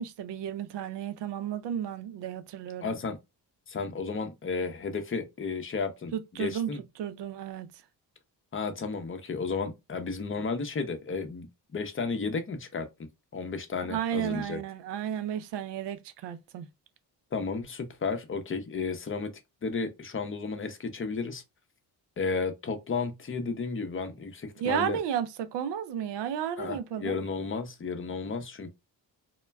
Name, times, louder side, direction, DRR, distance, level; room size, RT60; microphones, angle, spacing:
voice 1, 0.0-3.0 6.1-6.7 7.0-7.7 13.9-16.7 24.6-27.2, right 9 dB, 70° right, 0.6 m, -33 dB
voice 2, 2.8-3.2 3.7-6.8 8.5-11.5 11.7-12.9 13.3-14.6 17.3-19.3 19.6-21.4 22.2-25.0 26.6-28.7, left 4 dB, 30° left, 0.7 m, -33 dB
2.2 x 2.1 x 3.3 m
cardioid pair, 70°, 43 cm